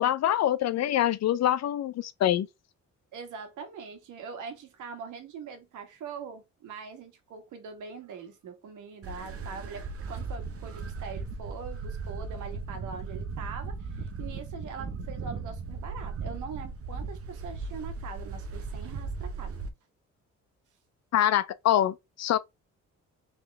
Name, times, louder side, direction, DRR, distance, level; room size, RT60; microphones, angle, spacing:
voice 1, 0.0-2.5 21.1-22.4, left 11 dB, 60° left, 0.5 m, -25 dB
voice 2, 3.1-19.6, right 5 dB, 80° right, 1.5 m, -42 dB
sound 1, 9.0-19.7, right 4 dB, 50° right, 0.8 m, -37 dB
3.8 x 3.1 x 3.4 m
cardioid pair, 90°, 30 cm